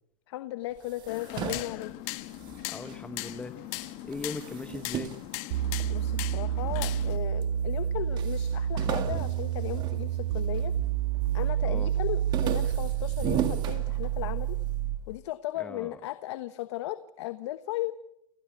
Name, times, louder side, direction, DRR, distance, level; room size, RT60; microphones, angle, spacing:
voice 1, 0.3-1.9 5.9-10.7 11.3-14.6 15.1-17.9, left 15 dB, 55° left, 12 dB, 1.2 m, -36 dB
sound 1, 0.8-3.4 3.7-6.2 6.8-7.5 7.8-7.9 8.2-10.8 11.1-11.6 11.9-14.5, right 9 dB, 25° right, 2.0 m, -36 dB
sound 2, 1.1-7.2, left 20 dB, 35° left, 1.3 m, -39 dB
voice 2, 2.7-3.6 4.0-5.1 11.6-11.9 15.6-16.0, left 3 dB, 5° left, 12 dB, 0.9 m, -39 dB
sound 3, 5.5-15.1, right 10 dB, 60° right, 1.9 m, -29 dB
30.0 x 19.0 x 8.1 m, 0.81 s
supercardioid pair, 160°, 18 cm